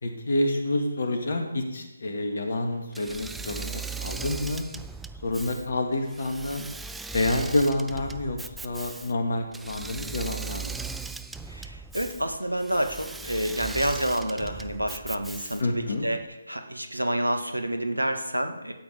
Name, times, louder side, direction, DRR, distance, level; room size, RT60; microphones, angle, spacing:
voice 1, 0.0-4.7 5.2-6.6 7.1-10.8 15.6-16.1, left 2 dB, 45° left, 4 dB, 2.0 m, -28 dB
Engine / Mechanisms, 2.9-15.8, right 4 dB, 5° right, 0.4 m, -38 dB
voice 2, 11.5-16.2 16.5-18.7, right 1 dB, 85° right, 6 dB, 1.9 m, -29 dB
13.0 x 8.7 x 5.4 m, 1.0 s
figure-of-eight pair, 145°, 0 cm